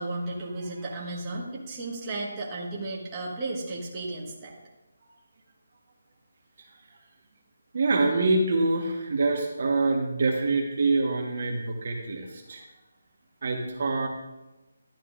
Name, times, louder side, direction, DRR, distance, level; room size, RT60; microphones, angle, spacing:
voice 1, 0.0-4.5, right 2 dB, 15° right, -5 dB, 1.5 m, -34 dB
voice 2, 7.7-12.6 13.4-14.1, right 3 dB, 50° right, 0 dB, 1.4 m, -25 dB
12.0 x 9.1 x 2.6 m, 1.0 s
hypercardioid pair, 170°, 0 cm